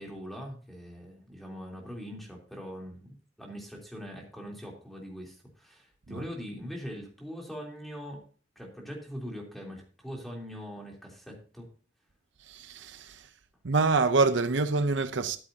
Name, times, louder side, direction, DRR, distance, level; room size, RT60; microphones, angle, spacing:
voice 1, 0.0-8.2 8.5-11.7, equal, ahead, 3.4 m, -42 dB
voice 2, 12.4-13.3 13.6-15.4, right 3 dB, 70° right, 0.7 m, -26 dB
13.0 x 11.0 x 2.8 m
head